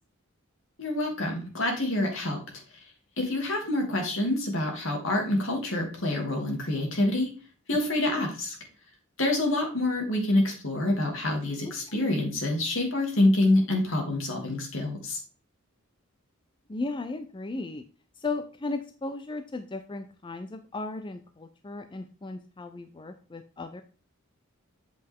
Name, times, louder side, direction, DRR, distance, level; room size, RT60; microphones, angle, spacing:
voice 1, 0.8-2.4 3.2-7.3 7.7-8.6 9.2-15.2, left 1 dB, 65° left, 2 dB, 2.7 m, -26 dB
voice 2, 16.7-17.8 18.2-23.8, left 3 dB, 25° left, 8 dB, 0.5 m, -36 dB
7.8 x 5.4 x 3.6 m, 0.38 s
head